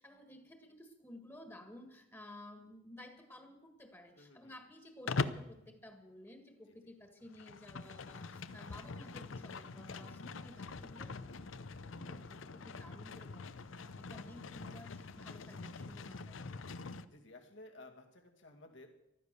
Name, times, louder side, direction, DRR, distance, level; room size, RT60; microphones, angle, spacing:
voice 1, 0.0-16.7, left 1 dB, 15° left, 6 dB, 1.6 m, -55 dB
voice 2, 4.2-4.5 6.7-6.8 10.0-10.2 17.1-19.0, left 2 dB, 70° left, 3 dB, 2.3 m, -56 dB
Livestock farm animals working animals, 5.1-5.5 7.2-17.1, left 4 dB, 85° left, 0.7 m, -43 dB
15.0 x 12.5 x 6.7 m, 0.86 s
head